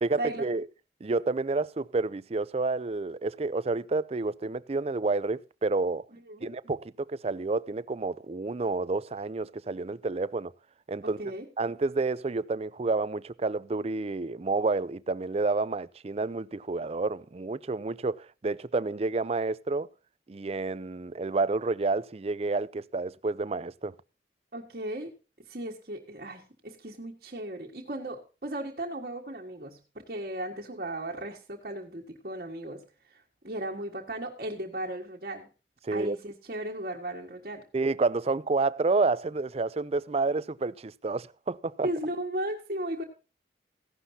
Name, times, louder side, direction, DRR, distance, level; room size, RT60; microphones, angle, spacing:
voice 1, 0.0-0.7 1.0-6.1 6.4-10.5 10.9-11.2 11.6-19.9 20.3-23.9 35.8-36.2 37.7-41.9, right 3 dB, 35° right, 0.4 m, -29 dB
voice 2, 6.2-6.5 11.0-11.5 24.5-25.1 25.5-32.8 33.1-35.5 35.9-37.6 41.8-43.0, right 1 dB, 50° right, 1.6 m, -36 dB
15.5 x 11.5 x 2.7 m
head